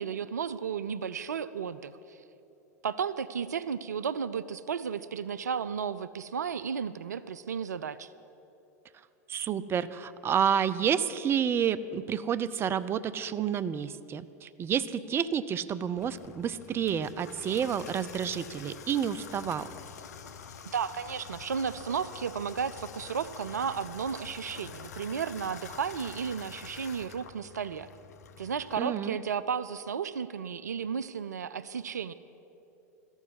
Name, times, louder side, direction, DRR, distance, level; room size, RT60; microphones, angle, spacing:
voice 1, 0.0-2.2 2.8-8.1 20.7-27.9 28.4-32.1, right 7 dB, 80° right, 15 dB, 0.4 m, -33 dB
voice 2, 9.3-19.7 28.8-29.2, right 8 dB, 25° right, 14 dB, 0.5 m, -29 dB
Water tap faucet / Bathtub (filling or washing), 16.0-28.8, left 7 dB, 75° left, 0.7 m, -47 dB
13.5 x 7.2 x 10.0 m, 2.8 s
hypercardioid pair, 90°, 9 cm